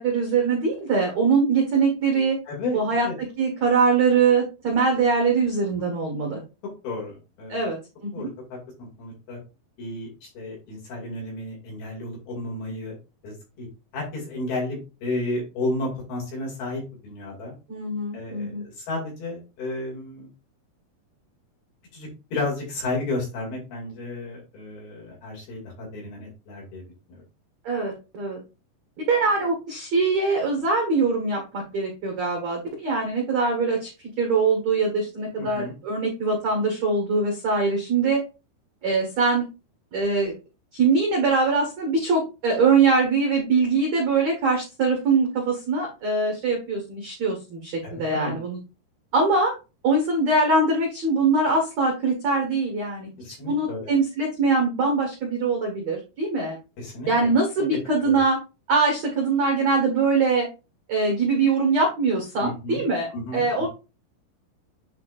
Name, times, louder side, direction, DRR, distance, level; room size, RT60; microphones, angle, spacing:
voice 1, 0.0-2.4 2.7-3.1 3.4-6.4 7.5-8.3 17.7-18.6 27.6-28.4 29.1-33.9 34.2-38.2 38.8-39.4 39.9-40.3 40.7-48.6 49.1-49.5 49.8-53.1 53.4-56.6 57.1-58.4 58.7-60.5 60.9-63.7, right 4 dB, 70° right, 1 dB, 1.7 m, -22 dB
voice 2, 2.5-3.1 5.8-6.0 6.8-7.6 8.1-9.4 9.8-12.9 13.2-13.7 13.9-17.6 18.1-20.3 21.9-26.8 27.1-27.2 35.4-35.7 47.8-48.3 53.2-53.9 56.8-57.1 58.0-58.2 62.4-62.8 63.1-63.7, left 2 dB, 55° left, -2 dB, 3.9 m, -32 dB
9.5 x 4.6 x 2.5 m, 0.29 s
omnidirectional pair, 5.6 m